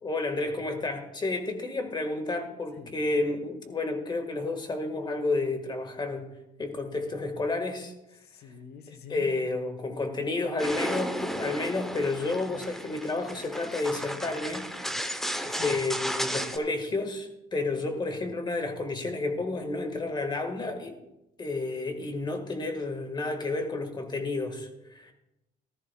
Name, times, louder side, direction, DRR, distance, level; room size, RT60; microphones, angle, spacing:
voice 1, 0.0-6.3 6.6-7.9 8.9-15.2 15.5-21.0 21.4-25.1, left 3 dB, 25° left, 6 dB, 1.8 m, -31 dB
voice 2, 8.2-9.3 15.5-15.8, left 7 dB, 70° left, 8 dB, 1.3 m, -45 dB
sound 1, 10.6-16.6, equal, ahead, 0.9 m, -34 dB
15.0 x 13.5 x 2.4 m, 0.91 s
cardioid pair, 110°, 17 cm